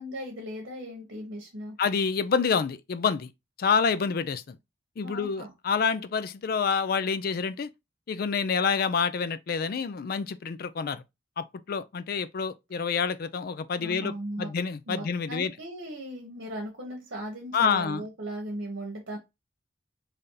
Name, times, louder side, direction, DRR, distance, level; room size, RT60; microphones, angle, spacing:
voice 1, 0.0-1.8 5.0-5.5 13.8-14.5 14.9-19.2, right 1 dB, 65° right, 1.1 m, -37 dB
voice 2, 1.8-3.3 3.6-4.6 5.0-7.7 8.1-11.0 11.4-15.5 17.5-18.0, left 6 dB, 50° left, 0.3 m, -28 dB
3.3 x 2.7 x 3.7 m
head